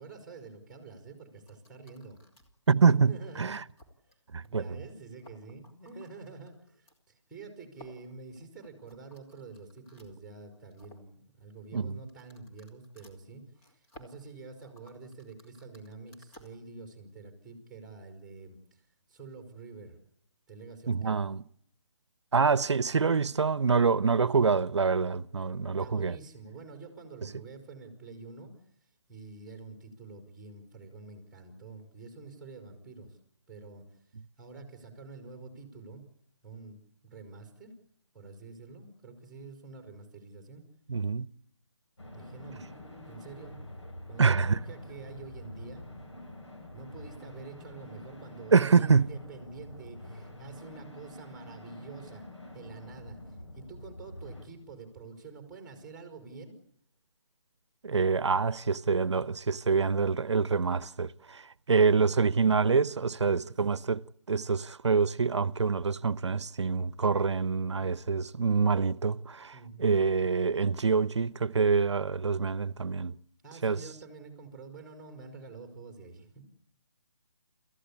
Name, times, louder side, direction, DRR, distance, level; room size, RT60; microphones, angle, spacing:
voice 1, 0.0-2.2 2.9-3.6 4.4-18.8 19.1-20.0 20.5-21.2 25.8-28.5 29.1-33.2 33.5-33.8 34.4-36.0 36.4-37.7 38.1-40.6 42.1-43.6 44.1-45.9 46.7-52.3 52.5-53.2 53.5-56.6 63.0-63.5 69.5-70.0 73.4-76.4, right 4 dB, 5° right, 4.3 m, -47 dB
sound 1, 1.5-2.7 3.1-3.2 3.7-4.2 4.4-4.5 4.8-4.9 5.1-7.0 7.7-10.1 10.5-11.1 12.0-16.5, equal, 20° left, 2.9 m, -57 dB
voice 2, 2.7-3.6 4.3-4.6 11.7-12.0 20.9-21.4 22.3-26.2 40.9-41.3 44.2-44.6 48.5-49.1 57.8-61.4 61.7-64.0 64.3-69.5 69.8-73.2 73.6-73.8, right 5 dB, 75° right, 0.9 m, -26 dB
sound 2, 42.0-54.5, left 1 dB, 80° left, 7.9 m, -47 dB
28.0 x 15.0 x 8.5 m
figure-of-eight pair, 155°, 15 cm